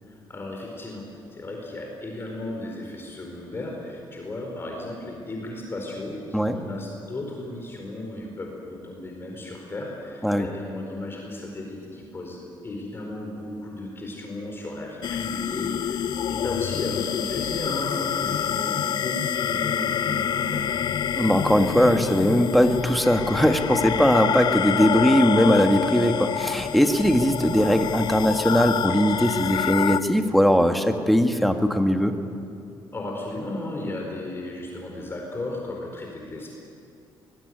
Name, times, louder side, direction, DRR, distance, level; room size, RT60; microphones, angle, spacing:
voice 1, 0.0-20.8 32.9-36.5, left 2 dB, 25° left, 0 dB, 4.5 m, -35 dB
sound 1, 15.0-30.0, left 8 dB, 55° left, 0.7 m, -27 dB
voice 2, 21.1-32.2, equal, ahead, 5 dB, 1.8 m, -20 dB
24.0 x 21.0 x 9.5 m, 2.6 s
cardioid pair, 130°, 9 cm